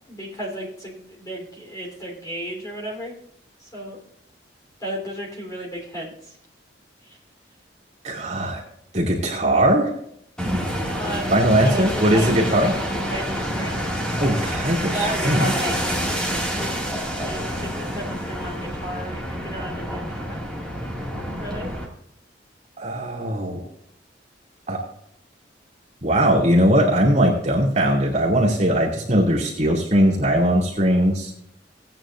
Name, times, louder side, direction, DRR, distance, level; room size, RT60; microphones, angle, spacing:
voice 1, 0.1-3.2 3.6-4.0 4.8-6.4 7.1-7.2 10.9-13.8 14.9-16.4 17.2-20.4 21.4-21.7, right 1 dB, 20° left, -2 dB, 3.6 m, -34 dB
voice 2, 8.0-8.6 8.9-9.9 11.3-12.7 14.2-15.5 22.8-23.6 24.7-24.8 26.0-31.3, right 1 dB, 40° right, -2 dB, 2.6 m, -20 dB
sound 1, 10.4-21.9, equal, 5° left, 2.2 m, -27 dB
17.5 x 9.1 x 2.6 m, 0.71 s
head